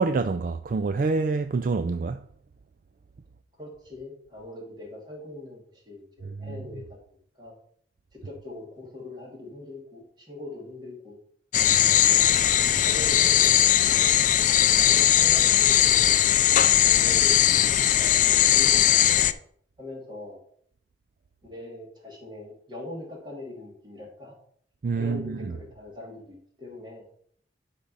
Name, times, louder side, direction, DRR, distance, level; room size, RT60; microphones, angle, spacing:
voice 1, 0.0-2.2 6.2-6.6 11.7-11.9 12.4-12.8 24.8-25.4, right 4 dB, 50° right, 0.4 m, -27 dB
voice 2, 3.6-6.8 7.4-7.5 8.1-11.2 11.9-12.2 12.8-14.1 14.7-16.3 16.8-17.6 17.9-19.3 19.8-20.4 21.4-24.4 25.0-27.0, left 2 dB, 25° right, 2.4 m, -41 dB
sound 1, 11.5-19.3, left 11 dB, 45° left, 0.4 m, -19 dB
10.5 x 3.6 x 5.5 m
head